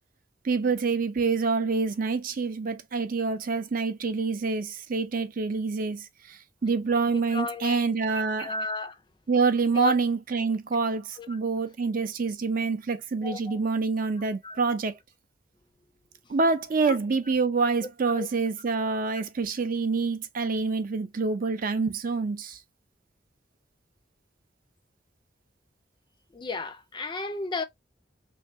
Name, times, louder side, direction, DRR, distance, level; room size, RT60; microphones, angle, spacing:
voice 1, 0.4-8.5 9.3-14.9 16.3-22.6, right 4 dB, 45° right, 0.5 m, -27 dB
voice 2, 7.1-9.0 9.7-9.9 10.9-11.4 13.2-13.6 14.2-14.6 16.8-17.0 18.1-18.3 26.3-27.6, left 3 dB, 25° left, 0.4 m, -34 dB
3.2 x 2.6 x 2.5 m
head